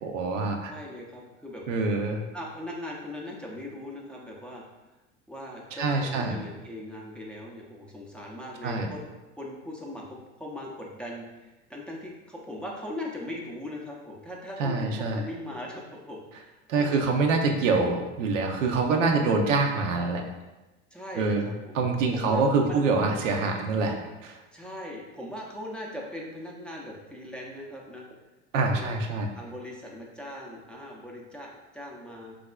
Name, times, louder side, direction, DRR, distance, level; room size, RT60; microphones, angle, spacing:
voice 1, 0.0-0.7 1.7-2.2 5.8-6.3 8.6-8.9 14.6-15.2 16.7-20.2 21.2-21.5 21.7-24.4 28.5-29.3, right 3 dB, 85° right, 3 dB, 0.5 m, -25 dB
voice 2, 0.6-1.6 2.3-4.6 5.3-9.0 9.4-17.0 19.1-19.4 20.9-21.8 22.1-22.9 24.5-28.1 28.7-29.0 29.3-32.4, left 1 dB, 5° left, -3 dB, 0.5 m, -40 dB
3.9 x 2.4 x 2.2 m, 1.1 s
hypercardioid pair, 85°, 37 cm